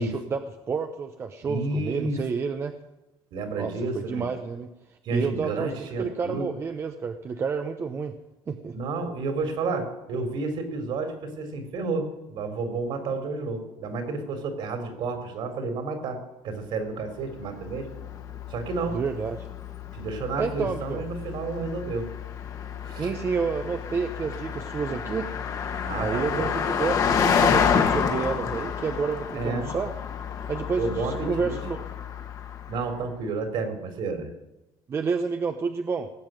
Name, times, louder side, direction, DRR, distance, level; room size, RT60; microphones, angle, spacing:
voice 1, 0.0-2.7 3.6-8.2 8.5-8.8 18.9-19.5 20.4-21.0 22.9-25.3 26.0-30.0 30.5-31.9 34.9-36.1, right 5 dB, 25° right, 6 dB, 0.9 m, -30 dB
voice 2, 1.4-2.2 3.3-4.3 5.0-6.5 8.7-17.9 18.5-19.0 19.9-22.1 22.8-23.1 25.8-26.5 29.4-29.7 30.8-31.6 32.7-34.3, right 3 dB, 60° right, 6 dB, 3.6 m, -31 dB
Car passing by, 17.2-32.9, left 7 dB, 40° left, 1.7 m, -29 dB
19.0 x 8.0 x 9.1 m, 1.0 s
cardioid pair, 155°, 10 cm